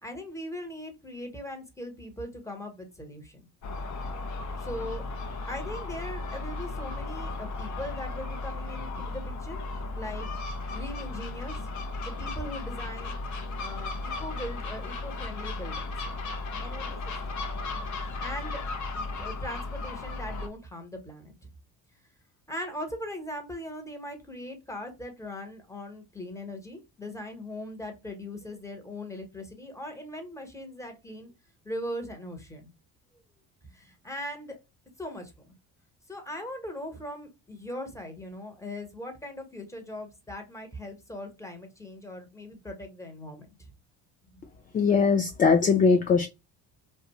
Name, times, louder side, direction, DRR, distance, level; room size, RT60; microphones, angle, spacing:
voice 1, 0.0-3.4 4.6-5.1 5.5-9.6 9.9-10.3 10.7-11.6 12.0-13.2 13.6-16.1 16.6-17.4 18.2-21.5 22.5-31.3 31.6-32.7 33.7-34.6 35.0-35.5 36.1-43.7 44.3-44.4, left 1 dB, 10° left, 0.9 m, -40 dB
Gull seagull, 3.6-20.5, left 3 dB, 45° left, 0.7 m, -35 dB
voice 2, 44.7-46.3, left 5 dB, 25° left, 0.3 m, -21 dB
2.4 x 2.2 x 2.8 m
supercardioid pair, 70°, 39 cm